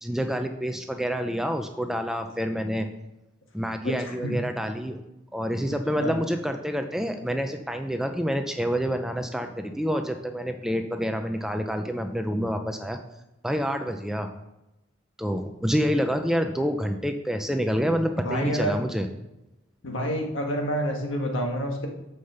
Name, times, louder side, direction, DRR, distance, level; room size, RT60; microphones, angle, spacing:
voice 1, 0.0-2.9 3.5-5.0 5.3-13.0 13.4-14.3 15.2-19.1, equal, ahead, 5 dB, 0.4 m, -27 dB
voice 2, 3.8-4.4 6.0-6.1 18.2-18.8 19.8-21.9, equal, 75° left, 2 dB, 1.6 m, -28 dB
6.6 x 5.6 x 6.8 m, 0.96 s
head